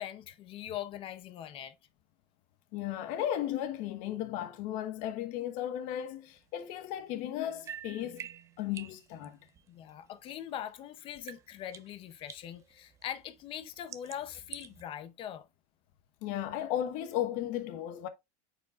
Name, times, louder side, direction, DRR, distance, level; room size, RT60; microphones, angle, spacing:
voice 1, 0.0-1.7 9.7-15.5, left 10 dB, 30° left, 0.6 m, -42 dB
voice 2, 2.7-8.3 8.6-9.4 16.2-18.1, left 11 dB, 45° left, 1.1 m, -35 dB
Water drops into a metallic bowl, 6.4-10.8 11.1-14.8, right 9 dB, 15° right, 0.3 m, -50 dB
8.6 x 4.9 x 2.4 m
supercardioid pair, 165°, 19 cm